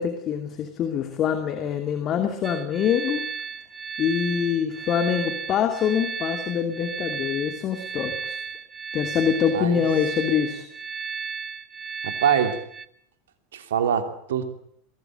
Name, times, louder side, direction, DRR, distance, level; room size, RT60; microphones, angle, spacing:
voice 1, 0.0-3.2 4.0-8.4 8.9-10.6, left 8 dB, 40° left, 6 dB, 2.6 m, -25 dB
sound 1, 2.4-12.9, right 6 dB, 25° right, 1.8 m, -34 dB
voice 2, 12.0-12.6 13.5-14.4, right 8 dB, 70° right, 8 dB, 2.9 m, -24 dB
22.5 x 18.5 x 9.0 m, 0.69 s
figure-of-eight pair, 85°, 0 cm